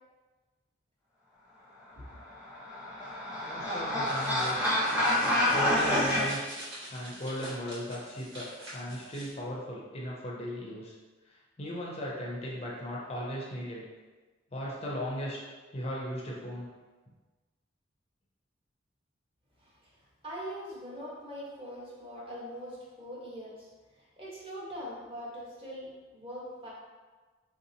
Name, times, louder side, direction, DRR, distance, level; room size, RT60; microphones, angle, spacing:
sound 1, 2.3-6.2, left 1 dB, 5° right, 0.9 m, -28 dB
voice 1, 3.4-4.7 5.5-10.9 11.3-13.8 14.5-15.4 15.7-16.7, equal, 35° left, -4 dB, 0.5 m, -37 dB
sound 2, 4.0-9.3, equal, 75° right, 1.4 m, -45 dB
voice 2, 20.2-23.7 24.2-25.9 26.1-26.7, equal, 30° right, -6 dB, 1.0 m, -42 dB
3.7 x 2.7 x 2.7 m, 1.3 s
head